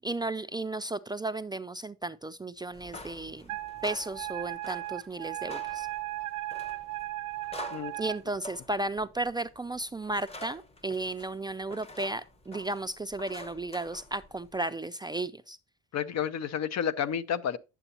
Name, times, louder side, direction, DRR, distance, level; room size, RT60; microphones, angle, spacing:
voice 1, 0.0-3.5 3.8-5.9 8.0-15.6, right 2 dB, 15° right, 0.3 m, -34 dB
sound 1, 2.7-14.6, left 1 dB, 20° left, 0.9 m, -48 dB
Wind instrument woodwind instrument, 3.5-8.2, right 17 dB, 75° right, 0.6 m, -36 dB
voice 2, 15.9-17.6, left 8 dB, 60° left, 0.7 m, -30 dB
9.9 x 7.0 x 2.8 m
cardioid pair, 90°, 30 cm